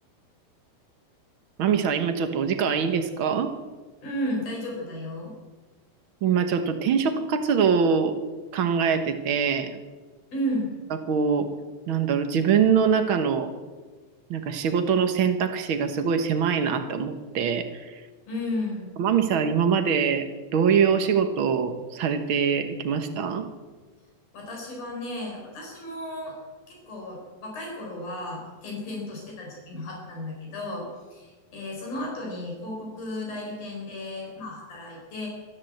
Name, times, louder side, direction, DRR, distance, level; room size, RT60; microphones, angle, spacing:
voice 1, 1.6-3.5 6.2-8.2 8.5-9.8 11.1-11.5 11.9-13.5 14.3-18.0 19.0-20.3 20.5-23.5, right 6 dB, 80° right, 7 dB, 1.1 m, -23 dB
voice 2, 4.0-5.3 10.3-10.7 18.3-19.0 24.3-26.3 26.7-35.3, left 1 dB, 70° left, -1 dB, 6.4 m, -33 dB
25.5 x 13.5 x 7.8 m, 1.3 s
omnidirectional pair, 4.3 m